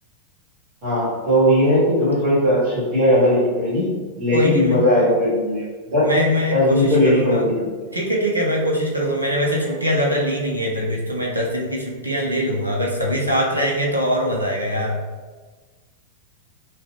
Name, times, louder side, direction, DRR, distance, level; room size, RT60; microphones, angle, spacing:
voice 1, 0.8-3.9 4.2-6.2 6.5-7.5, equal, 40° right, -10 dB, 1.2 m, -18 dB
voice 2, 4.3-4.8 6.0-7.4 7.9-15.0, equal, 85° right, -2 dB, 0.6 m, -22 dB
3.0 x 2.4 x 3.1 m, 1.4 s
figure-of-eight pair, 90°, 0 cm